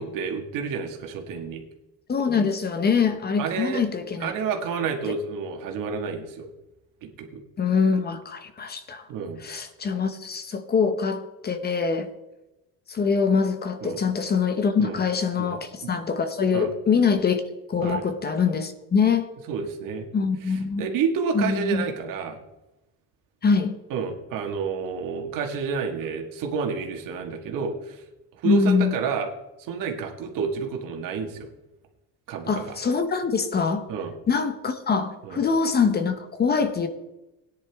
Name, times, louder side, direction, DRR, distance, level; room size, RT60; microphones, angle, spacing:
voice 1, 0.0-1.6 3.4-3.8 4.2-6.5 7.0-7.4 9.1-9.4 13.8-14.0 14.8-15.0 15.4-15.6 15.8-15.9 16.5-16.7 17.8-18.0 19.5-20.1 20.5-22.4 23.9-28.0 28.4-29.3 29.6-31.5 32.3-32.8 33.9-34.1 35.2-35.4, right 6 dB, 60° right, 3 dB, 2.0 m, -29 dB
voice 2, 2.1-4.3 7.6-9.0 9.4-12.1 12.9-17.4 17.7-19.3 20.1-20.9 21.3-21.8 23.4-23.7 28.4-28.9 32.5-33.9 34.3-36.9, left 5 dB, 25° left, 9 dB, 0.9 m, -24 dB
17.0 x 10.0 x 3.6 m, 0.99 s
cardioid pair, 140°, 36 cm